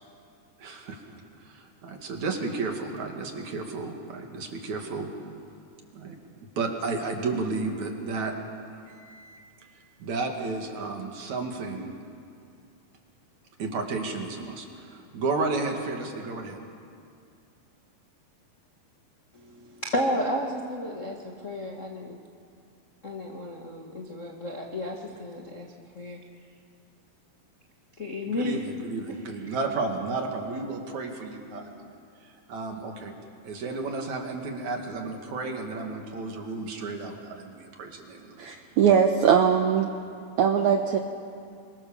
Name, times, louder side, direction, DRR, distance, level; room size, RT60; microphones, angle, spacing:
voice 1, 0.6-5.1 5.9-6.2 6.6-8.3 8.9-9.4 10.0-11.9 13.6-16.6 28.3-31.9 32.2-33.1 33.4-38.4, right 3 dB, 50° right, 2 dB, 3.3 m, -32 dB
voice 2, 19.3-22.2 23.0-25.7 25.9-26.2 28.0-28.6 29.1-29.2, left 1 dB, 65° left, -1 dB, 0.7 m, -32 dB
voice 3, 38.4-39.9 40.4-41.0, right 7 dB, 75° right, 5 dB, 1.8 m, -21 dB
29.5 x 24.0 x 7.2 m, 2.4 s
omnidirectional pair, 4.7 m